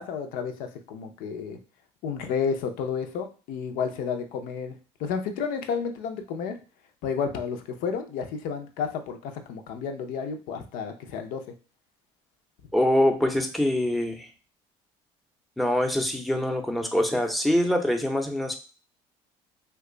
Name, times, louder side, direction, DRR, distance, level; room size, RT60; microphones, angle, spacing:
voice 1, 0.0-1.6 2.0-4.7 5.0-6.6 7.0-11.4, left 6 dB, 75° left, 6 dB, 0.6 m, -31 dB
voice 2, 12.7-14.3 15.6-18.5, left 1 dB, ahead, 3 dB, 0.7 m, -24 dB
2.9 x 2.3 x 3.8 m, 0.35 s
supercardioid pair, 80°, 15 cm